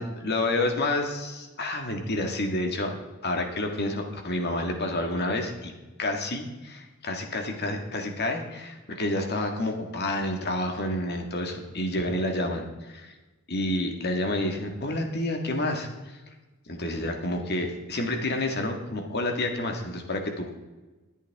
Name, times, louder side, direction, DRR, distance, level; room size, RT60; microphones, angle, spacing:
voice 1, 0.0-2.9 3.2-5.7 6.0-13.1 13.5-16.2 16.7-20.6, left 1 dB, 50° left, 3 dB, 1.8 m, -29 dB
21.0 x 8.4 x 3.6 m, 1.2 s
head